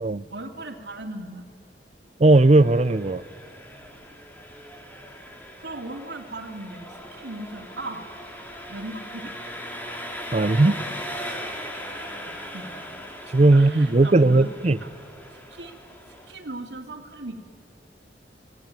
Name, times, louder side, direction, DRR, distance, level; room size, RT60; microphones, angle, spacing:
voice 1, 0.3-1.4 5.6-8.1 8.7-9.4 12.2-13.1 13.5-14.9 15.5-15.7 16.3-17.4, right 2 dB, 85° right, 3 dB, 2.5 m, -38 dB
voice 2, 2.2-3.2 10.3-10.8 13.3-14.8, right 2 dB, 40° right, 17 dB, 0.5 m, -17 dB
Engine, 2.3-16.3, equal, 10° left, 3.0 m, -39 dB
28.0 x 19.0 x 9.1 m, 2.1 s
head